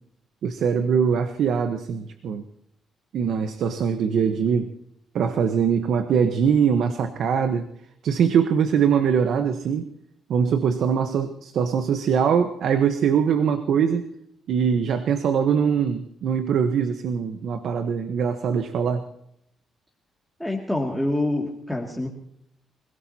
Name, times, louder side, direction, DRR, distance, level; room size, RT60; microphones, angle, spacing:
voice 1, 0.4-2.4 3.1-4.7 5.1-7.7 8.0-9.9 10.3-14.1 14.5-19.1, right 7 dB, 70° right, 9 dB, 1.1 m, -22 dB
voice 2, 20.4-22.1, left 1 dB, ahead, -2 dB, 2.4 m, -26 dB
26.0 x 17.0 x 2.9 m, 0.73 s
cardioid pair, 90°, 0 cm